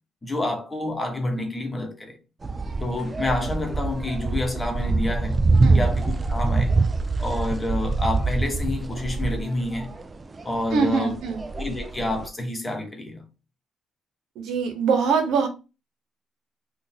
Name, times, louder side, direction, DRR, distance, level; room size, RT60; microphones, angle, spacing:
voice 1, 0.2-2.2 2.8-5.4 5.7-6.7 7.2-9.9 10.4-11.1 11.5-13.2, left 1 dB, 20° left, 1.0 m, -28 dB
sound 1, 2.4-12.3, right 3 dB, 30° right, 0.4 m, -25 dB
voice 2, 10.7-11.4 14.4-15.5, right 5 dB, 85° right, 0.9 m, -23 dB
3.8 x 2.5 x 2.7 m
cardioid pair, 90°, 0 cm